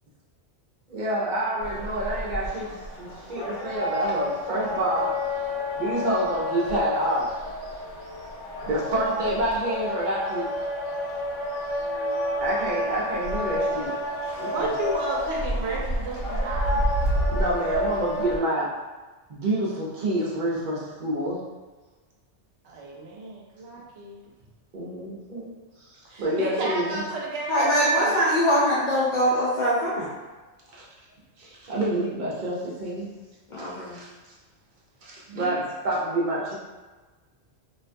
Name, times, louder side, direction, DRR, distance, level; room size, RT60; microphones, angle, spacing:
voice 1, 0.9-2.7 3.0-5.1 5.7-7.3 8.6-10.5 12.4-13.9 14.4-14.7 17.3-18.7 19.3-21.4 24.7-25.5 26.2-27.0 30.7-30.8 31.4-33.1 33.6-34.1 35.0-36.5, right 1 dB, 50° right, -5 dB, 0.7 m, -28 dB
sound 1, 1.6-18.4, left 1 dB, 80° left, 1.0 m, -29 dB
voice 2, 14.4-16.9 22.6-24.2 26.1-28.1 35.3-35.6, right 2 dB, 75° right, -3 dB, 0.9 m, -33 dB
voice 3, 27.5-30.1 33.5-34.0, equal, 60° left, -7 dB, 0.5 m, -22 dB
2.5 x 2.2 x 2.5 m, 1.3 s
omnidirectional pair, 1.2 m